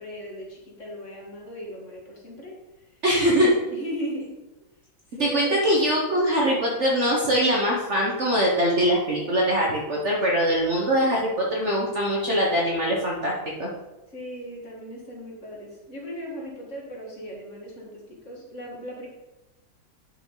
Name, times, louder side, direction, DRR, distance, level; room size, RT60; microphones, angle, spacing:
voice 1, 0.0-3.0 3.6-4.4 5.1-5.6 14.1-19.1, equal, 40° left, -2 dB, 2.0 m, -37 dB
voice 2, 3.0-3.5 5.2-13.7, equal, 45° right, -3 dB, 1.3 m, -22 dB
9.3 x 5.8 x 3.9 m, 1.0 s
omnidirectional pair, 2.1 m